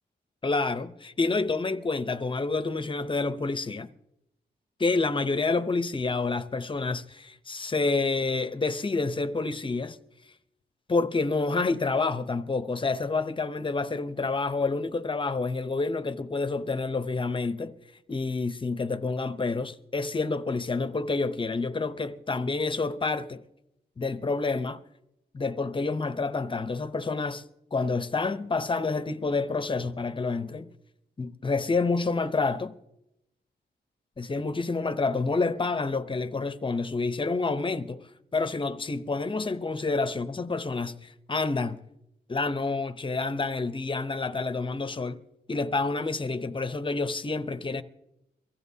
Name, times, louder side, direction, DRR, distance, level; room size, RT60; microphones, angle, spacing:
voice 1, 0.4-3.9 4.8-10.0 10.9-17.7 18.1-23.4 24.0-24.8 25.3-27.4 27.7-30.7 31.2-32.8 34.2-41.8 42.3-45.2 45.5-47.8, left 3 dB, 30° left, 0.7 m, -28 dB
23.5 x 15.5 x 2.8 m
wide cardioid pair, 150°, 18 cm